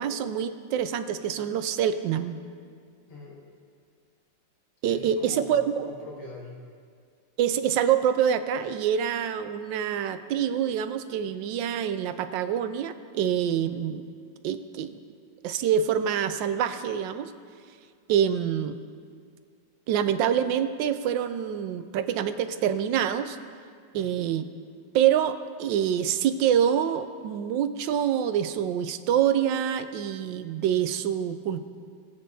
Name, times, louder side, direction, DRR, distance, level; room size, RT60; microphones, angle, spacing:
voice 1, 0.0-2.4 4.8-5.8 7.4-14.0 14.4-15.0 15.4-17.3 18.1-18.8 19.9-23.4 23.9-24.4 24.9-31.7, right 9 dB, 75° right, 10 dB, 1.2 m, -26 dB
voice 2, 3.1-3.4 4.8-6.6 23.9-24.1, left 2 dB, 70° left, -4 dB, 2.6 m, -43 dB
20.0 x 8.2 x 2.7 m, 2.1 s
omnidirectional pair, 2.1 m